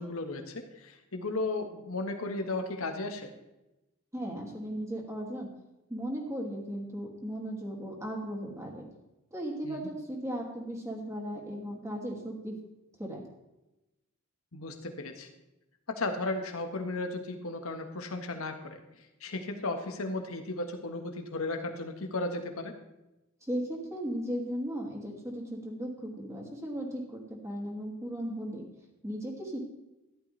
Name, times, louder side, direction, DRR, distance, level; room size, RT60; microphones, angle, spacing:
voice 1, 0.0-3.3 9.6-9.9 14.5-15.3 15.9-22.7, left 2 dB, 85° left, 4 dB, 1.6 m, -35 dB
voice 2, 4.1-5.5 5.9-8.9 9.3-12.5 13.0-13.2 23.4-28.6 29.0-29.7, equal, 15° right, -1 dB, 2.6 m, -36 dB
14.5 x 11.5 x 3.4 m, 0.96 s
head